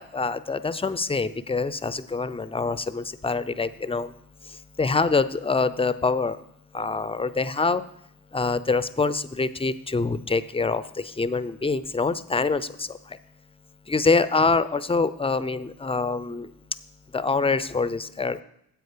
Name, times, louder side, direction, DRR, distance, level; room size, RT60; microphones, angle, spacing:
voice 1, 0.0-4.1 4.8-6.4 6.7-7.8 8.3-10.8 11.2-12.9 13.9-16.5 17.1-18.4, left 4 dB, 15° left, 15 dB, 0.5 m, -25 dB
9.5 x 7.7 x 5.1 m, 0.76 s
supercardioid pair, 50°, 42 cm